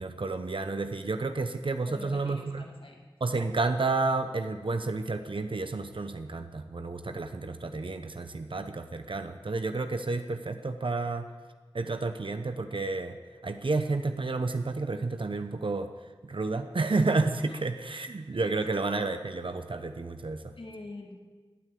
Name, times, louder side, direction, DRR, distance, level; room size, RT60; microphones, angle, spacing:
voice 1, 0.0-2.6 3.2-11.3 11.7-13.2 13.4-15.9 16.2-20.5, right 3 dB, 65° right, 8 dB, 0.9 m, -31 dB
voice 2, 1.9-3.0 18.3-18.5 20.6-21.2, left 2 dB, 70° left, 1 dB, 2.4 m, -45 dB
17.5 x 9.1 x 8.4 m, 1.4 s
wide cardioid pair, 45°, 9 cm